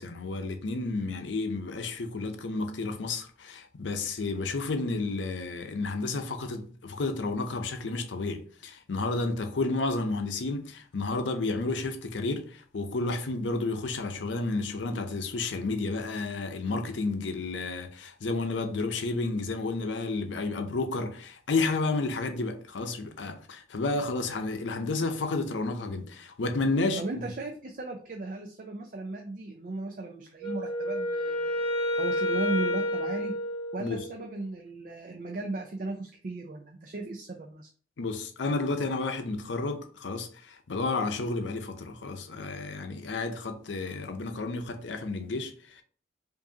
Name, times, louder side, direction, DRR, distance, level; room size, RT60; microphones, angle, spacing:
voice 1, 0.0-27.3 33.8-34.1 38.0-45.8, left 3 dB, 90° left, 0.6 m, -31 dB
voice 2, 27.0-31.6 32.0-33.3 33.7-37.7, right 2 dB, 50° right, 0.5 m, -36 dB
Wind instrument woodwind instrument, 30.4-34.3, equal, 70° right, 1.2 m, -30 dB
4.8 x 2.6 x 2.7 m
head